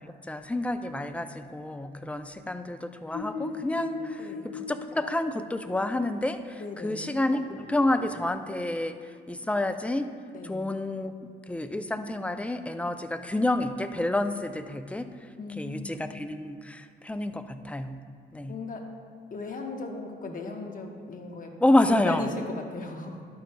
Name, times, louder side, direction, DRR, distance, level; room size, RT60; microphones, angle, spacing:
voice 1, 0.3-4.0 4.5-6.4 6.8-8.9 9.3-10.1 10.4-11.1 11.5-15.1 15.6-18.0 18.3-18.5 21.6-22.3, left 1 dB, 5° left, 9 dB, 0.4 m, -28 dB
sound 1, 3.1-6.1 7.1-8.3, left 4 dB, 75° left, 0.7 m, -39 dB
voice 2, 4.2-4.5 6.6-7.1 10.3-10.7 15.4-15.9 18.4-18.9 19.3-21.6 21.9-23.2, left 3 dB, 45° left, 3 dB, 1.1 m, -37 dB
11.5 x 8.9 x 2.2 m, 2.1 s
cardioid pair, 90°, 20 cm